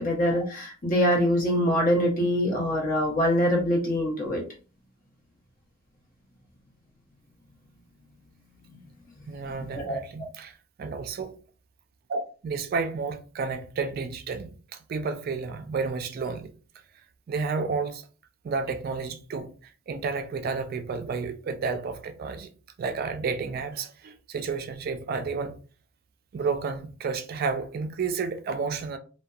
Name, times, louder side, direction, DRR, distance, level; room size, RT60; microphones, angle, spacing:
voice 1, 0.0-4.4 9.6-10.0, equal, 45° left, 1.0 m, -24 dB
voice 2, 9.3-11.3 12.1-16.5 17.3-18.0 18.4-22.5 22.8-25.6 26.3-29.0, right 4 dB, 45° right, 0.3 m, -31 dB
2.6 x 2.1 x 2.3 m
head